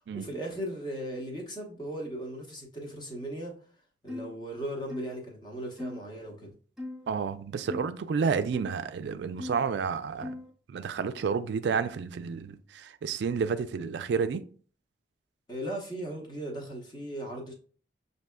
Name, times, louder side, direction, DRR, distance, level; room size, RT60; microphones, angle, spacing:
voice 1, 0.1-3.6 4.0-6.5 15.5-17.5, right 1 dB, 25° left, 0.9 m, -37 dB
sound 1, 4.1-4.3 4.9-5.2 5.8-6.0 6.8-7.1 7.7-7.9 8.5-8.8 9.4-9.7 10.2-10.5, left 2 dB, ahead, 0.7 m, -39 dB
voice 2, 7.1-10.3 10.7-14.4, right 5 dB, 70° right, 0.3 m, -30 dB
6.5 x 2.7 x 2.2 m
head